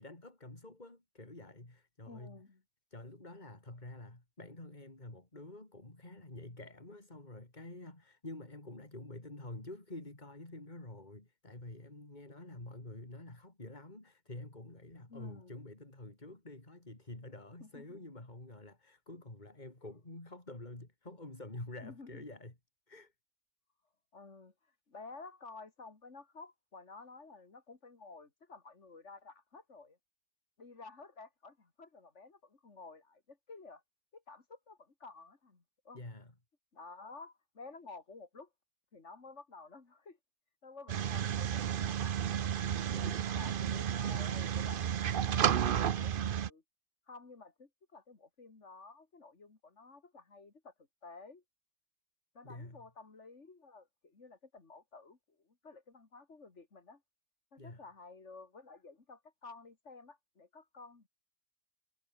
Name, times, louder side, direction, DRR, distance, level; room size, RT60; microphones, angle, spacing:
voice 1, 0.0-2.4 2.9-22.5 22.9-23.1 35.9-36.3 42.9-43.4 52.4-52.8 57.6-57.8, left 2 dB, 40° left, 4.0 m, -48 dB
voice 2, 2.1-2.6 15.1-15.6 17.6-18.0 19.8-19.9 21.8-22.2 24.1-24.5 24.9-30.0 30.6-33.8 34.1-36.0 36.7-38.5 38.9-40.2 40.6-42.3 43.3-46.6 47.1-50.7 51.0-51.4 52.3-57.0 57.5-61.1, left 3 dB, 90° left, 3.0 m, -52 dB
sound 1, 40.9-46.5, right 9 dB, 55° right, 0.8 m, -32 dB
omnidirectional pair, 1.2 m